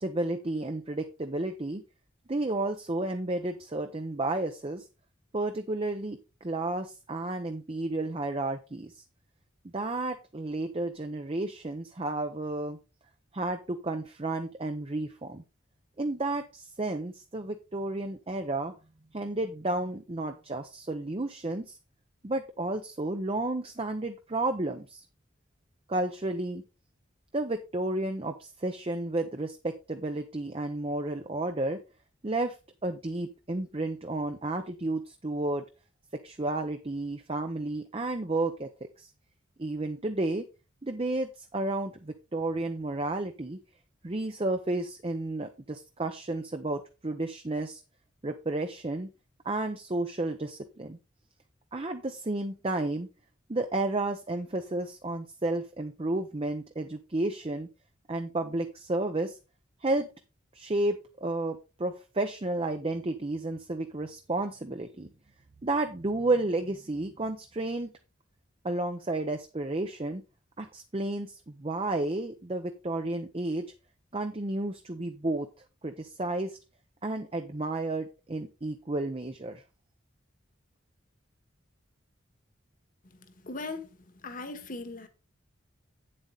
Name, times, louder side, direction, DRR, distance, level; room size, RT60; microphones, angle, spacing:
voice 1, 0.0-1.8 2.3-4.9 5.3-9.0 9.7-12.8 13.3-15.4 16.0-18.7 19.1-21.8 22.2-25.0 25.9-26.6 27.3-31.8 32.2-32.6 32.8-35.6 36.2-38.7 39.0-39.1 39.6-40.5 40.8-43.6 44.0-47.8 48.2-49.1 49.4-51.0 51.7-53.1 53.5-57.7 58.1-59.4 59.8-60.1 60.5-65.1 65.6-67.9 68.6-70.2 70.6-73.7 74.1-75.5 75.8-76.6 77.0-79.6, right 2 dB, 30° right, 0.7 m, -32 dB
voice 2, 83.4-84.0 84.2-85.1, left 3 dB, 45° left, 1.5 m, -38 dB
8.8 x 7.6 x 3.9 m
head